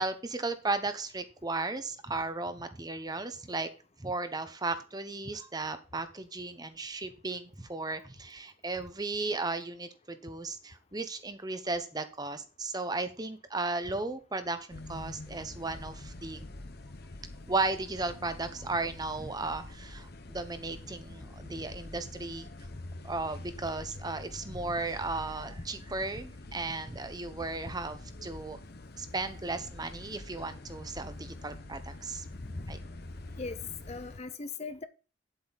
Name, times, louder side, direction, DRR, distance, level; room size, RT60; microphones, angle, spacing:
voice 1, 0.0-3.7 4.0-16.5 17.5-22.5 23.0-28.6 29.0-32.2 32.7-32.8, right 3 dB, 20° right, 1.0 m, -35 dB
sound 1, 14.7-34.2, left 2 dB, 55° left, 1.0 m, -45 dB
voice 2, 33.9-34.8, left 3 dB, 35° left, 0.6 m, -39 dB
9.3 x 8.0 x 4.1 m
head